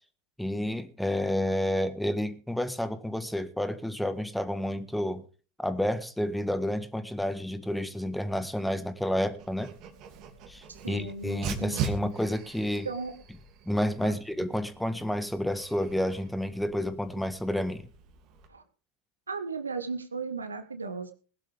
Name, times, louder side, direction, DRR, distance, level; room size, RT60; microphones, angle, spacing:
voice 1, 0.4-5.2 5.6-9.7 10.5-12.9 13.7-17.9, left 1 dB, 5° left, 1.7 m, -30 dB
Dog, 9.4-18.5, right 6 dB, 45° right, 2.8 m, -41 dB
voice 2, 10.7-12.1 12.8-13.1 14.0-14.2 18.5-18.6 19.3-21.1, right 4 dB, 80° right, 1.6 m, -36 dB
20.0 x 11.5 x 3.6 m
figure-of-eight pair, 80°, 0 cm